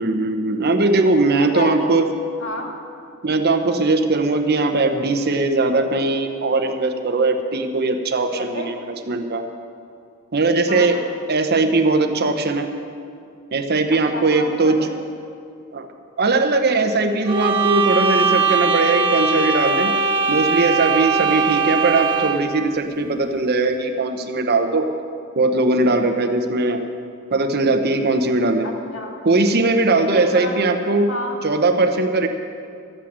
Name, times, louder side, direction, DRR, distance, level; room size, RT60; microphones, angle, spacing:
voice 1, 0.0-2.0 3.2-9.4 10.3-11.0 11.3-12.7 13.5-14.9 15.7-15.9 16.2-19.9 20.3-24.9 25.4-26.8 27.3-28.7 29.2-31.1 31.4-32.3, right 3 dB, 50° right, 6 dB, 0.9 m, -19 dB
voice 2, 1.4-1.9 2.4-2.8 8.3-8.7 10.7-11.2 14.1-15.0 21.4-21.8 28.6-29.2 30.1-30.6 31.1-31.4, left 2 dB, 65° left, 0 dB, 2.1 m, -31 dB
sound 1, 17.3-22.5, right 5 dB, 25° right, 1.2 m, -20 dB
13.5 x 8.7 x 7.5 m, 2.5 s
head